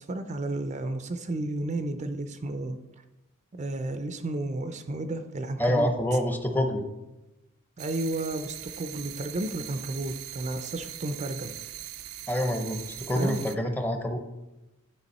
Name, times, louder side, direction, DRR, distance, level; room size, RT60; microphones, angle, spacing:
voice 1, 0.0-2.8 3.5-6.2 7.8-11.5 13.1-13.4, right 2 dB, 35° right, 8 dB, 0.4 m, -32 dB
voice 2, 5.6-6.8 12.3-14.2, equal, 10° left, 5 dB, 0.7 m, -26 dB
sound 1, 7.8-13.6, right 13 dB, 90° right, 0.5 m, -41 dB
11.0 x 4.8 x 4.1 m, 1.0 s
head